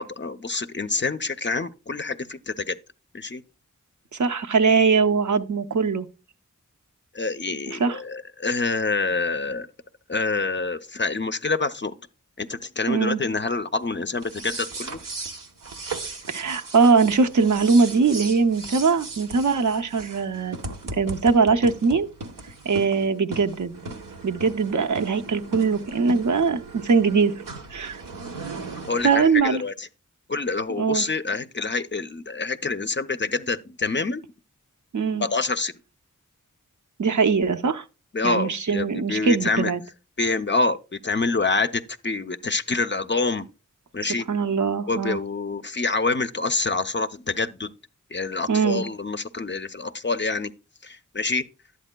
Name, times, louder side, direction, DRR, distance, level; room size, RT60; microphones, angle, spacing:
voice 1, 0.0-2.8 3.1-3.4 7.1-9.7 10.1-11.9 12.4-15.0 28.9-29.9 30.3-34.2 35.2-35.7 38.1-39.7 40.2-43.5 43.9-44.3 44.9-47.7 48.1-50.5 50.8-51.5, left 3 dB, 35° left, 0.5 m, -26 dB
voice 2, 4.1-6.1 7.7-8.0 12.9-13.2 16.3-20.6 21.0-22.1 22.7-23.7 24.2-27.4 27.7-28.0 29.0-29.6 30.8-31.0 34.9-35.3 37.0-37.8 38.2-39.8 44.3-45.2 48.5-48.8, right 5 dB, 65° right, 0.7 m, -21 dB
sound 1, 14.2-29.4, right 3 dB, 85° right, 0.9 m, -37 dB
11.0 x 8.4 x 2.2 m
wide cardioid pair, 40°, 32 cm